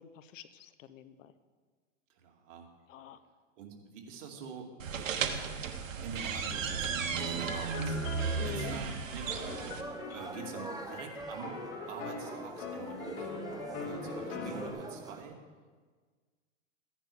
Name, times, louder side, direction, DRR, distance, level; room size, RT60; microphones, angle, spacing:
voice 1, 0.0-1.3 2.9-3.2 8.4-8.8, left 10 dB, 80° left, 13 dB, 1.0 m, -46 dB
voice 2, 2.1-2.7 3.6-5.6 6.0-9.7 10.1-11.6 11.9-15.4, right 5 dB, 70° right, 1 dB, 2.6 m, -46 dB
sound 1, 4.8-9.8, right 5 dB, 85° right, 1.3 m, -34 dB
sound 2, 7.2-14.7, left 4 dB, 60° left, 4.1 m, -42 dB
sound 3, 9.2-15.2, right 3 dB, 10° right, 0.9 m, -44 dB
15.0 x 10.0 x 4.9 m, 1.5 s
hypercardioid pair, 120°, 38 cm